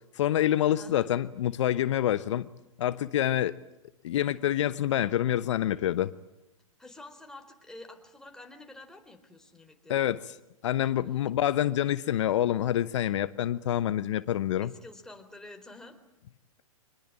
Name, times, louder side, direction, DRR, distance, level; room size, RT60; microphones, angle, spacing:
voice 1, 0.1-2.4 2.8-3.5 4.0-6.1 9.9-10.3 10.6-14.7, left 12 dB, 60° left, 14 dB, 1.0 m, -27 dB
voice 2, 0.8-1.1 6.8-10.1 14.6-16.0, left 2 dB, 5° left, 4 dB, 4.2 m, -48 dB
25.5 x 21.0 x 8.9 m, 0.93 s
hypercardioid pair, 115°, 18 cm